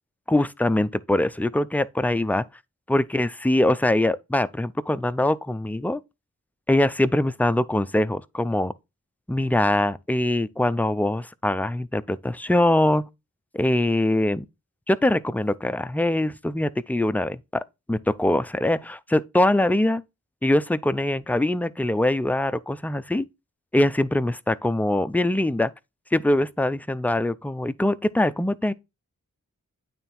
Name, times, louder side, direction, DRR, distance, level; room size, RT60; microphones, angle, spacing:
voice 1, 0.3-2.4 2.9-6.0 6.7-8.7 9.3-13.0 13.5-14.5 14.9-17.6 17.9-20.0 20.4-23.3 23.7-25.7 26.1-28.7, left 1 dB, 5° left, 0.4 m, -23 dB
8.9 x 3.4 x 4.2 m
cardioid pair, 50°, 32 cm